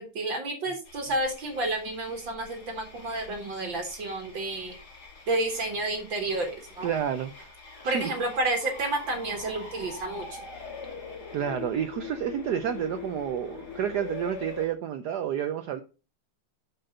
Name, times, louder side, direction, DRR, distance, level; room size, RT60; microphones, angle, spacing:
voice 1, 0.0-4.8 5.3-6.9 7.9-10.4, right 2 dB, 60° right, 2.1 m, -30 dB
sound 1, 0.9-14.7, left 5 dB, 45° left, 2.5 m, -43 dB
voice 2, 6.8-7.5 7.8-8.2 11.3-15.8, right 9 dB, 75° right, 0.9 m, -30 dB
6.7 x 5.8 x 5.3 m
omnidirectional pair, 2.4 m